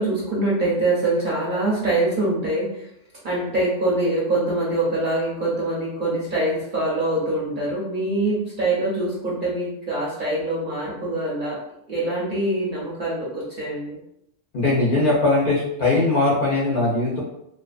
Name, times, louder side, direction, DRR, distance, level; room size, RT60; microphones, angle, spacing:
voice 1, 0.0-2.9 3.2-11.6 11.9-14.0, right 2 dB, 50° right, -6 dB, 0.7 m, -24 dB
voice 2, 14.5-17.2, left 2 dB, 55° left, -5 dB, 0.7 m, -20 dB
2.5 x 2.3 x 2.3 m, 0.80 s
omnidirectional pair, 1.3 m